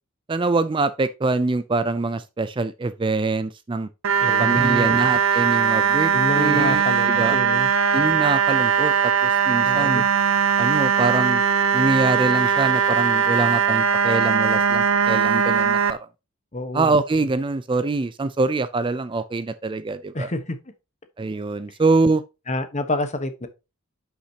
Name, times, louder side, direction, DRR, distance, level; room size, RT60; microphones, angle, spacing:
voice 1, 0.3-3.9 4.4-7.4 7.9-10.1 10.6-11.4 11.7-16.0 16.7-20.3 21.2-22.2, right 3 dB, 25° right, 0.4 m, -24 dB
sound 1, 4.0-15.9, right 7 dB, 70° right, 0.7 m, -20 dB
voice 2, 4.2-5.1 6.1-7.7 9.6-10.1 16.5-16.9 20.1-20.6 22.5-23.5, left 1 dB, 35° left, 1.1 m, -28 dB
10.0 x 5.8 x 2.8 m
head